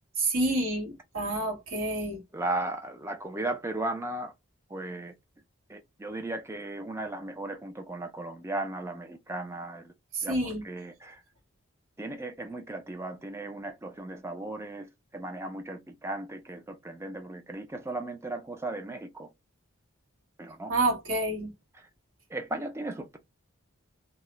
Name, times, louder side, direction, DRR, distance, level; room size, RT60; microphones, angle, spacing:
voice 1, 0.2-2.2 10.1-10.6 20.7-21.5, right 2 dB, 70° right, 1.0 m, -28 dB
voice 2, 2.3-4.3 4.7-5.1 5.7-9.9 10.2-11.2 12.0-19.3 20.4-20.7 21.7-21.9 22.3-23.2, right 2 dB, 10° right, 0.4 m, -36 dB
2.3 x 2.0 x 2.9 m
head